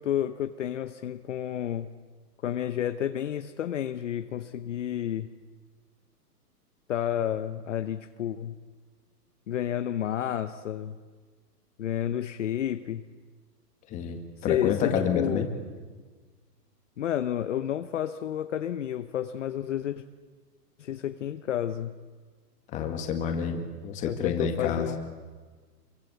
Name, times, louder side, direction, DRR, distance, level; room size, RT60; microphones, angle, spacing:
voice 1, 0.0-1.9 2.4-5.3 6.9-8.5 9.5-11.0 11.8-13.0 14.5-15.4 17.0-20.0 20.8-21.9 24.0-25.0, left 10 dB, 45° left, 10 dB, 1.0 m, -30 dB
voice 2, 13.9-15.5 22.7-24.9, left 7 dB, 15° left, 5 dB, 2.0 m, -29 dB
27.5 x 23.5 x 8.3 m, 1.4 s
hypercardioid pair, 165°, 49 cm